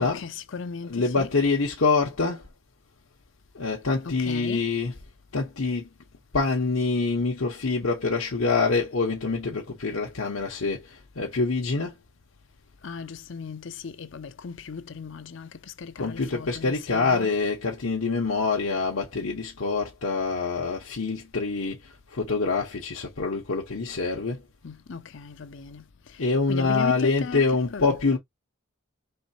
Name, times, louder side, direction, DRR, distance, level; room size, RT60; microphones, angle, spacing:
voice 1, 0.0-1.4 4.0-4.7 12.8-17.3 24.6-28.0, left 5 dB, 60° left, 0.6 m, -37 dB
voice 2, 0.9-2.4 3.5-4.9 5.3-5.9 6.3-11.9 16.0-21.8 22.1-24.4 26.2-28.2, left 4 dB, 80° left, 1.0 m, -25 dB
4.4 x 3.2 x 2.7 m
head